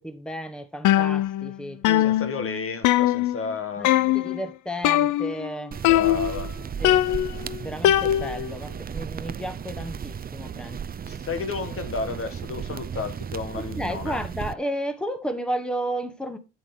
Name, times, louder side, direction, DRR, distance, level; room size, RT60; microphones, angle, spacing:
voice 1, 0.0-2.4 3.8-3.9 4.1-5.7 6.8-7.0 7.6-10.8 13.6-16.4, equal, 5° left, 1.2 m, -33 dB
sound 1, 0.8-1.6 1.8-3.5 3.8-4.4 4.8-5.5 5.8-6.5 6.8-8.5, left 13 dB, 85° left, 0.5 m, -21 dB
voice 2, 2.0-4.2 5.8-6.5 11.1-14.2, left 4 dB, 45° left, 1.3 m, -32 dB
sound 2, 5.7-14.5, right 7 dB, 30° right, 0.5 m, -35 dB
9.2 x 8.6 x 3.7 m
cardioid pair, 90°, 30 cm